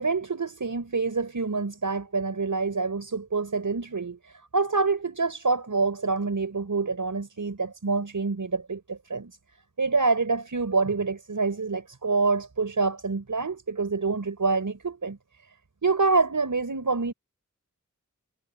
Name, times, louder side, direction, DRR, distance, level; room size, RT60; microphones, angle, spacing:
voice 1, 0.0-9.3 9.8-15.2 15.8-17.1, right 4 dB, 70° right, 6.1 m, -26 dB
wide cardioid pair, 55°, 31 cm